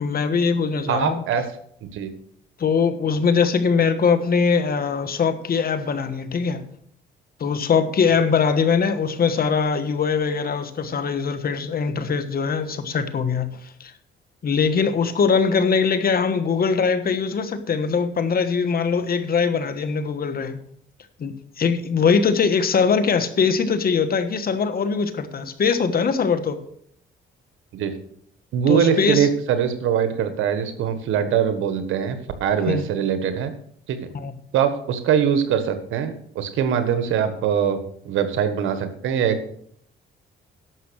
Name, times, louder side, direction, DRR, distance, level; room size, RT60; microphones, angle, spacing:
voice 1, 0.0-1.2 2.6-6.6 7.4-13.5 13.8-13.9 14.4-20.6 21.2-26.6 28.7-29.3 32.7-32.9 34.1-34.3, left 5 dB, 50° left, 1.3 m, -21 dB
voice 2, 0.9-1.5 1.9-2.1 27.7-27.9 28.5-33.5 33.9-34.1 34.5-39.5, right 8 dB, 85° right, 1.5 m, -22 dB
11.0 x 6.9 x 6.4 m
cardioid pair, 90°, 20 cm